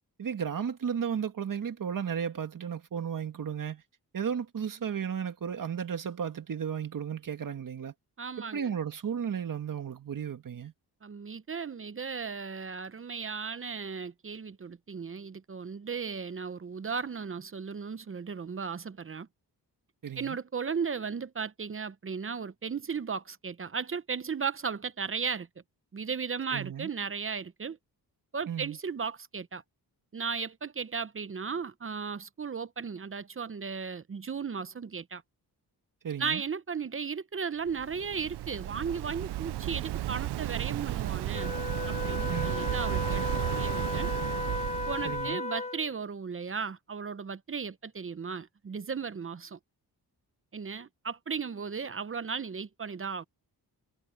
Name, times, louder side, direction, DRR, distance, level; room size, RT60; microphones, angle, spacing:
voice 1, 0.2-3.8 4.1-7.9 8.4-10.7 20.0-20.4 26.5-26.9 28.5-28.8 36.0-36.4 42.3-42.5 45.0-45.4, right 7 dB, 55° right, 2.0 m, -34 dB
voice 2, 8.2-8.7 11.0-19.3 20.2-25.5 25.9-27.8 28.3-29.6 30.1-35.2 36.2-41.5 41.9-44.1 44.9-49.6 50.5-53.2, right 5 dB, 35° right, 0.7 m, -36 dB
Waves surf, 37.7-45.3, right 14 dB, 85° right, 0.6 m, -33 dB
Wind instrument woodwind instrument, 41.3-46.0, left 3 dB, 15° left, 1.6 m, -35 dB
wide cardioid pair, 115°, 39 cm